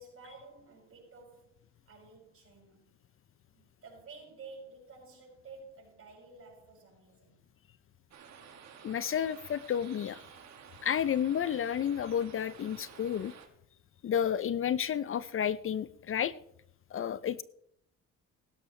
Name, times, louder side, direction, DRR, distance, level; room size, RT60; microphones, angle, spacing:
voice 1, 0.0-1.6 1.9-2.9 3.5-7.4, right 3 dB, 50° right, 6.6 m, -52 dB
sound 1, 8.1-13.5, right 7 dB, 65° right, 2.0 m, -52 dB
voice 2, 8.8-10.2 10.8-13.3 14.0-16.3 16.9-17.4, left 9 dB, 45° left, 0.5 m, -31 dB
16.5 x 13.0 x 3.2 m
cardioid pair, 90°, 30 cm